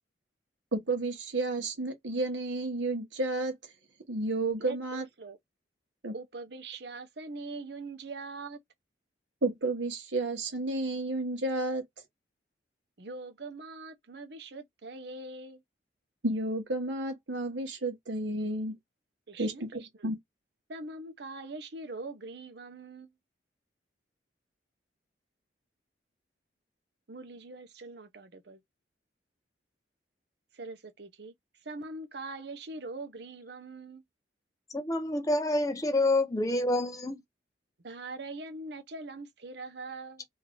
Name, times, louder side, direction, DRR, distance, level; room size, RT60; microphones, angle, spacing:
voice 1, 0.7-3.6 4.1-5.0 6.0-6.1 9.4-11.8 16.2-18.7 19.4-20.2, right 2 dB, 85° right, 1.2 m, -31 dB
voice 2, 4.6-5.4 6.1-8.6 13.0-15.6 19.3-20.1 20.7-23.1 27.1-28.6 30.5-31.3 31.6-34.0 37.8-40.3, right 3 dB, 65° right, 0.8 m, -42 dB
voice 3, 34.7-37.2, left 2 dB, 20° left, 0.7 m, -27 dB
3.2 x 2.7 x 3.8 m
head